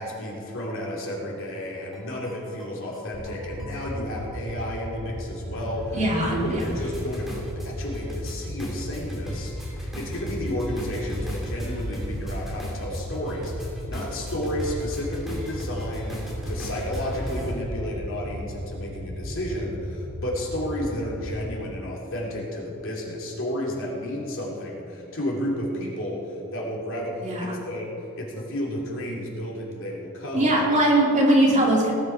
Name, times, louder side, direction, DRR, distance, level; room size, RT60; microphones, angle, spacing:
voice 1, 0.0-6.0 6.4-27.9 28.2-30.8, left 1 dB, 60° left, -3 dB, 3.1 m, -32 dB
sound 1, 1.6-17.5, equal, ahead, 2.7 m, -37 dB
sound 2, 3.1-21.6, equal, 70° right, 1.7 m, -36 dB
voice 2, 5.9-6.6 27.2-27.6 30.3-31.9, right 1 dB, 35° right, -3 dB, 2.6 m, -20 dB
18.5 x 9.8 x 4.7 m, 2.9 s
head